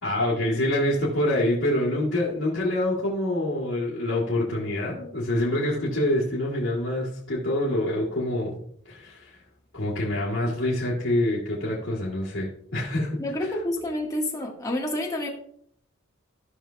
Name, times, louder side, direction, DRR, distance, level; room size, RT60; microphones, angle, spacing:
voice 1, 0.0-8.6 8.8-9.4 9.7-13.2, left 1 dB, 60° left, -7 dB, 2.2 m, -26 dB
voice 2, 13.2-15.3, left 1 dB, 15° left, -1 dB, 1.5 m, -28 dB
14.5 x 5.7 x 2.3 m, 0.65 s
head